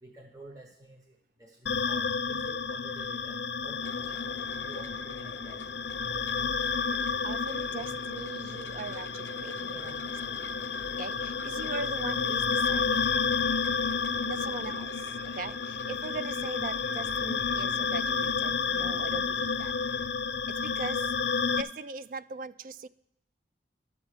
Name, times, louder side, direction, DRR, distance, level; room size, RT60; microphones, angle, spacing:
voice 1, 0.0-3.8 4.6-5.6 14.4-14.6 15.2-15.3, right 1 dB, 20° right, 1 dB, 1.1 m, -50 dB
sound 1, 1.7-21.6, left 5 dB, 75° left, 0.5 m, -31 dB
sound 2, 3.8-20.1, left 2 dB, 15° left, 0.7 m, -50 dB
voice 2, 6.8-10.1 11.0-13.0 14.3-19.7 20.6-21.1 21.5-22.9, right 4 dB, 50° right, 16 dB, 0.3 m, -40 dB
12.0 x 7.0 x 5.0 m, 0.80 s
head